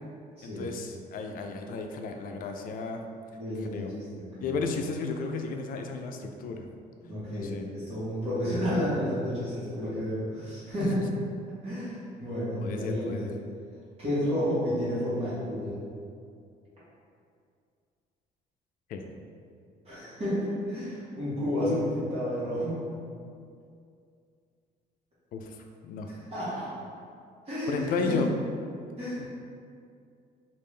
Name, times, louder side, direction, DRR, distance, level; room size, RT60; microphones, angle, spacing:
voice 1, 0.4-3.0 3.6-3.9 4.4-6.7 7.3-7.7 10.8-11.0 12.6-13.3 18.9-19.1 25.3-25.6 25.8-26.1 27.7-28.3 29.2-29.3, left 4 dB, 55° left, 4 dB, 0.4 m, -33 dB
voice 2, 3.3-4.5 7.0-11.0 11.6-13.3 14.0-15.7 19.8-22.8 26.1-26.7 27.5-28.2 29.0-29.2, equal, 35° right, -11 dB, 1.3 m, -31 dB
3.6 x 2.5 x 3.2 m, 2.4 s
cardioid pair, 110°, 17 cm